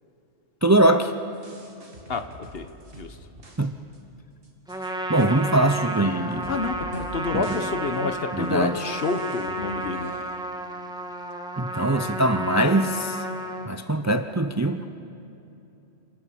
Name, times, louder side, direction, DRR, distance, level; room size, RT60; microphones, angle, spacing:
voice 1, 0.6-1.1 3.6-3.8 5.1-6.5 7.3-7.4 8.3-8.8 11.6-13.2 13.6-14.9, right 1 dB, 20° right, 9 dB, 0.5 m, -22 dB
sound 1, 1.3-3.7 3.9-4.0 4.4-4.9 5.2-5.3 5.9-6.0 6.3-7.2 7.4-7.7 7.9-8.0 8.4-8.5 8.9-10.4, equal, 45° right, 2.7 m, -46 dB
Trumpet, 4.7-13.7, right 1 dB, 5° right, 1.5 m, -32 dB
voice 2, 6.5-10.2, left 4 dB, 50° left, 9 dB, 1.3 m, -29 dB
28.0 x 19.0 x 7.1 m, 2.8 s
omnidirectional pair, 1.3 m